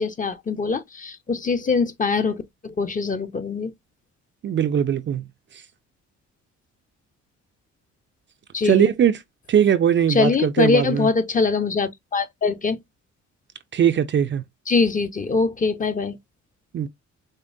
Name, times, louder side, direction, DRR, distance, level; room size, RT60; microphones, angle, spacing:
voice 1, 0.0-3.7 8.5-8.9 10.1-12.8 14.7-16.2, left 4 dB, 25° left, 0.6 m, -23 dB
voice 2, 4.4-5.2 8.6-9.2 9.5-11.1 13.7-14.4 16.7-16.9, right 9 dB, 40° right, 0.4 m, -20 dB
5.1 x 2.0 x 2.5 m
cardioid pair, 90°, 30 cm